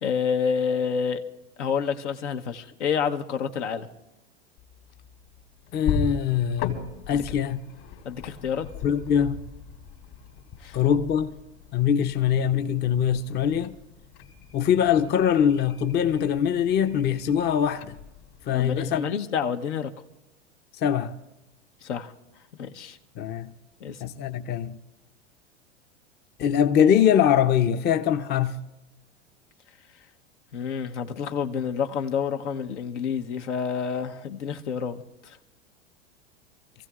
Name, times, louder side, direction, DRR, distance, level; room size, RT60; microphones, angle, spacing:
voice 1, 0.0-1.2 1.6-3.9 7.1-7.2 8.0-8.7 10.6-10.8 18.5-19.9 21.8-22.1 22.6-23.0 23.8-24.0 30.5-35.4, left 7 dB, 75° left, 1.1 m, -28 dB
sound 1, 4.6-19.0, left 6 dB, 55° left, 2.7 m, -39 dB
voice 2, 5.7-6.8 7.1-7.6 8.8-9.4 10.7-11.3 11.7-13.8 14.5-18.0 18.5-19.1 20.8-21.1 23.2-23.5 24.0-24.8 26.4-28.6, left 9 dB, 30° left, 0.7 m, -23 dB
27.5 x 15.0 x 2.4 m
hypercardioid pair, 95°, 36 cm